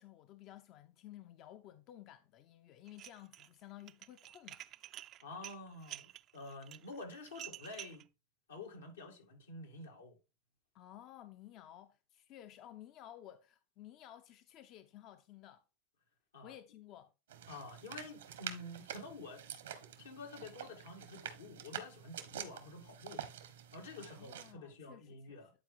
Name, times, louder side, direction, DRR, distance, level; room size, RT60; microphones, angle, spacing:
voice 1, 0.0-4.6 10.7-15.6 16.4-17.1 24.0-25.5, left 12 dB, 50° left, 0.6 m, -55 dB
Dishes pots and pans, 2.9-3.5 3.8-8.0, right 13 dB, 45° right, 0.4 m, -50 dB
voice 2, 5.2-8.1 8.5-10.2 16.3-16.5 17.5-19.4 20.0-23.2 23.7-25.5, left 2 dB, 90° left, 2.2 m, -49 dB
sound 1, 17.3-24.5, right 10 dB, 85° right, 1.3 m, -47 dB
10.5 x 4.4 x 3.8 m
hypercardioid pair, 95°, 0 cm